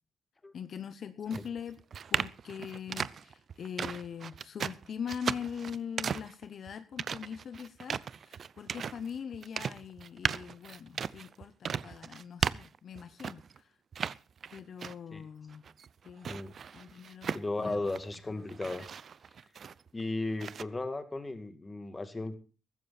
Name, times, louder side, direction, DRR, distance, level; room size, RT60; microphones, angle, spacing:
voice 1, 0.5-1.8 2.1-13.7 14.5-15.6 16.0-16.3 16.7-17.9 18.6-18.8, left 7 dB, 55° left, 11 dB, 1.0 m, -42 dB
sound 1, 1.3-13.6 13.9-15.2 15.5-18.2 18.5-20.0 20.4-20.6, right 7 dB, 50° right, 0.6 m, -37 dB
voice 2, 17.3-18.9 19.9-22.3, left 2 dB, 20° left, 9 dB, 2.3 m, -35 dB
15.0 x 14.0 x 4.3 m, 0.36 s
cardioid pair, 90°, 0 cm